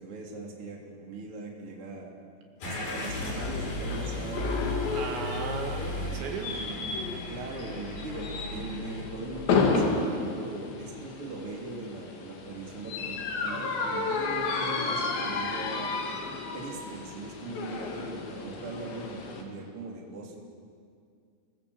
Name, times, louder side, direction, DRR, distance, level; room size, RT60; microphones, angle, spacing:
voice 1, 0.0-2.1 2.6-5.1 6.4-6.7 7.3-16.0 16.5-20.4, right 2 dB, 30° right, -1 dB, 3.8 m, -40 dB
Car / Engine starting, 2.6-9.0, left 2 dB, 50° left, 7.8 m, -36 dB
sound 1, 3.2-19.4, left 4 dB, 70° left, 4.7 m, -32 dB
voice 2, 4.9-6.6, right 5 dB, 75° right, 2 dB, 4.4 m, -35 dB
30.0 x 20.5 x 8.2 m, 2.3 s
omnidirectional pair, 5.3 m